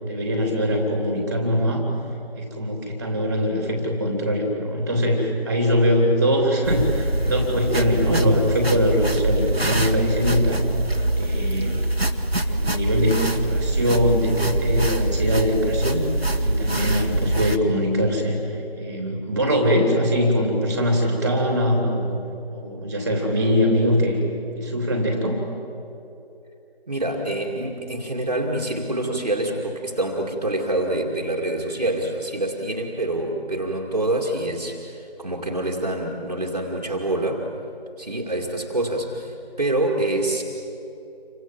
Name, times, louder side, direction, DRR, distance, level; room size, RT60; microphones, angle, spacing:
voice 1, 0.0-1.9 2.3-10.6 11.1-11.8 12.5-16.0 16.4-18.4 18.8-22.1 22.5-24.2 24.6-25.4, equal, 15° right, 2 dB, 3.0 m, -22 dB
sound 1, 6.6-17.6, right 1 dB, 75° right, 1.9 m, -24 dB
voice 2, 26.9-37.5 38.0-40.4, right 1 dB, 40° right, 0 dB, 2.4 m, -26 dB
28.5 x 25.5 x 7.5 m, 2.9 s
figure-of-eight pair, 165°, 31 cm